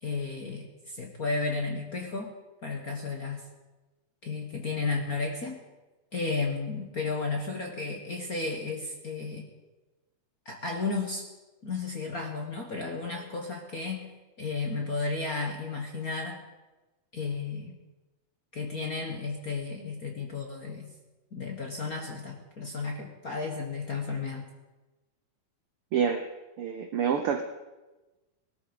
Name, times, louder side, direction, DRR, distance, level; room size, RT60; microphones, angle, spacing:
voice 1, 0.0-2.3 2.6-3.4 4.2-5.6 6.1-9.5 10.4-11.3 11.6-14.1 14.4-16.4 17.1-17.8 18.5-20.9 21.3-24.5, left 4 dB, 45° left, 1 dB, 1.2 m, -33 dB
voice 2, 25.9-26.3 26.6-27.4, right 7 dB, 90° right, 7 dB, 1.2 m, -27 dB
20.0 x 12.5 x 5.2 m, 1.1 s
omnidirectional pair, 3.6 m